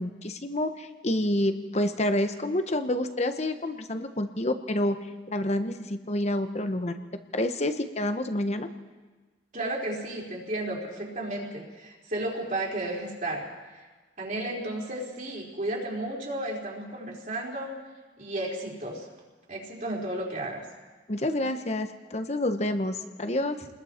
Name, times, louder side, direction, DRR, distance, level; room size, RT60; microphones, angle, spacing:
voice 1, 0.0-5.0 5.3-7.0 7.3-8.7 21.1-23.6, left 1 dB, 40° left, 8 dB, 1.1 m, -28 dB
voice 2, 9.5-13.5 14.2-17.7 18.2-19.1 19.5-20.6, right 1 dB, 45° right, -2 dB, 4.0 m, -33 dB
29.5 x 21.0 x 4.5 m, 1.3 s
head